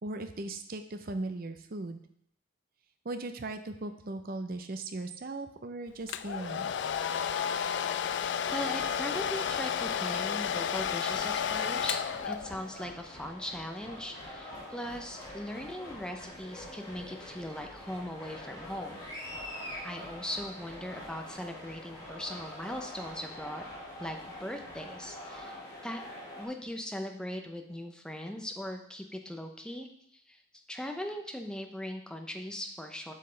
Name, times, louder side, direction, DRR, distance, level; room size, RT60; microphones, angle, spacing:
voice 1, 0.0-2.0 3.0-6.7, right 2 dB, 50° right, 8 dB, 0.6 m, -38 dB
Domestic sounds home sounds, 6.1-12.8, left 8 dB, 65° left, 0.3 m, -32 dB
sound 1, 8.5-26.5, left 1 dB, 20° left, 1.9 m, -45 dB
voice 2, 8.5-12.0 12.3-19.0 19.8-23.7 24.0-25.5 25.8-26.0 26.4-29.9 30.3-30.4 30.7-33.1, left 1 dB, 5° left, 4 dB, 0.6 m, -39 dB
7.7 x 5.7 x 3.3 m, 0.71 s
head